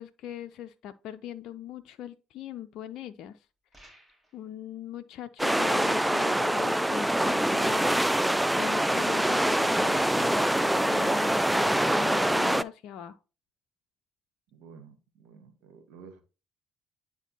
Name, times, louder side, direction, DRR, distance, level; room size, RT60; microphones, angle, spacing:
voice 1, 0.0-3.5 4.3-8.1 8.6-13.2, left 10 dB, 60° left, 0.4 m, -41 dB
sound 1, 3.7-4.4, right 1 dB, 25° right, 4.1 m, -56 dB
sound 2, 5.4-12.6, right 1 dB, 5° right, 0.4 m, -25 dB
voice 2, 14.5-16.2, right 5 dB, 70° right, 1.5 m, -51 dB
9.8 x 4.5 x 2.9 m
hypercardioid pair, 50°, 0 cm